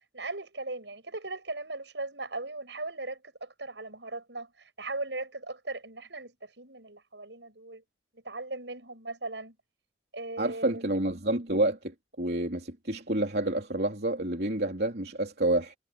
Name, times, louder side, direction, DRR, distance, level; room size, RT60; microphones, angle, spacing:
voice 1, 0.1-7.8 8.2-9.6 10.1-10.9, right 2 dB, 80° right, 8.0 m, -38 dB
voice 2, 10.4-15.7, right 1 dB, 60° right, 3.5 m, -29 dB
head